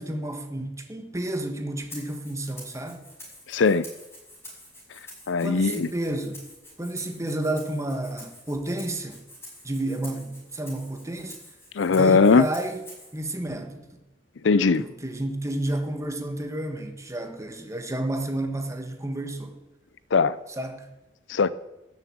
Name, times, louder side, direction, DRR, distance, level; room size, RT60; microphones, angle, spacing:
voice 1, 0.0-3.0 5.4-6.4 6.8-9.3 9.6-11.4 11.9-12.8 13.1-13.8 14.8-19.6 20.5-20.9, right 1 dB, 15° right, 1.5 m, -31 dB
Rattle (instrument), 1.9-13.2, left 1 dB, 15° left, 6.2 m, -47 dB
voice 2, 3.5-3.8 5.3-5.9 11.8-12.5 14.4-14.8 20.1-20.3 21.3-21.5, left 4 dB, 75° left, 0.5 m, -19 dB
13.0 x 7.5 x 8.7 m
head